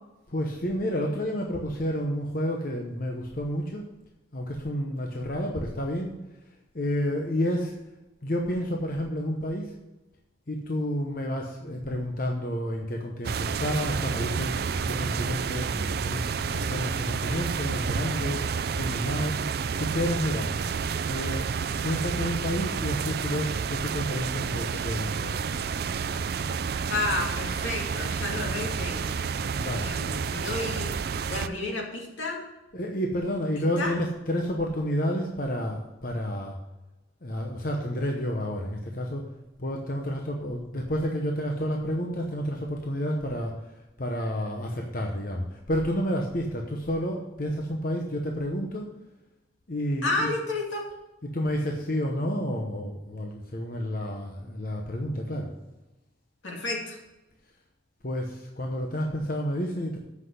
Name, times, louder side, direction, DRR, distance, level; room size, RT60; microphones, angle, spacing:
voice 1, 0.3-3.9 4.3-6.1 6.7-7.8 8.2-9.8 10.5-19.4 19.8-20.6 21.1-21.5 21.8-25.4 29.6-29.9 32.7-36.6 37.2-48.9 49.7-50.3 51.2-55.5 58.0-60.0, equal, 45° left, 1 dB, 0.9 m, -30 dB
sound 1, 13.2-31.5, right 6 dB, 50° right, 0.4 m, -30 dB
voice 2, 26.9-29.1 29.8-30.9 31.3-32.4 33.8-33.9 50.0-50.8 56.4-57.0, left 2 dB, 80° left, -1 dB, 2.5 m, -31 dB
7.9 x 5.9 x 7.7 m, 1.0 s
head